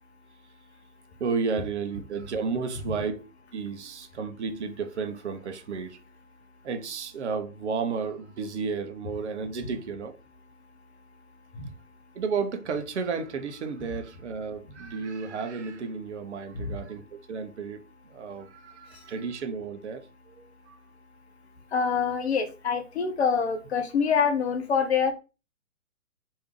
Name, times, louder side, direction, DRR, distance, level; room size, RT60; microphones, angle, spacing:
voice 1, 1.2-3.2 3.5-6.0 6.6-10.2 12.1-20.8, right 5 dB, 55° right, 0.7 m, -32 dB
voice 2, 21.7-25.1, left 6 dB, 50° left, 0.8 m, -26 dB
3.3 x 2.7 x 3.1 m
figure-of-eight pair, 130°, 42 cm